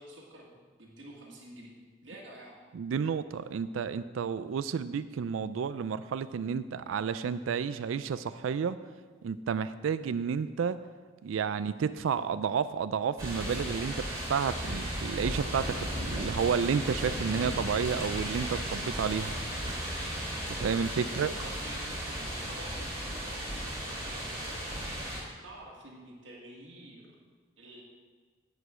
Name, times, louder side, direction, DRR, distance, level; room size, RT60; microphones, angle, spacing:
voice 1, 0.0-1.7 2.0-2.6 21.0-24.6 25.4-27.1 27.6-27.8, right 1 dB, 70° right, -3 dB, 1.7 m, -49 dB
voice 2, 2.7-8.8 9.2-10.8 11.2-19.3 20.6-21.3, right 6 dB, 85° right, 13 dB, 0.3 m, -31 dB
sound 1, 13.2-25.2, equal, 15° right, 2.8 m, -35 dB
9.8 x 5.2 x 8.2 m, 1.5 s
head